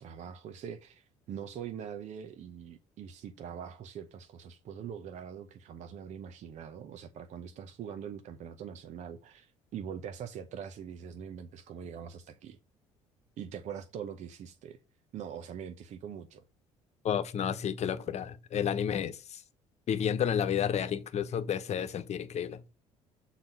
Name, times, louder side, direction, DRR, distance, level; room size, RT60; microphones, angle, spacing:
voice 1, 0.0-12.6 13.4-14.8 15.1-16.4, right 8 dB, 55° right, 0.8 m, -43 dB
voice 2, 17.0-19.4 19.9-22.6, left 8 dB, 50° left, 1.0 m, -31 dB
7.2 x 4.1 x 5.5 m
hypercardioid pair, 55°, 14 cm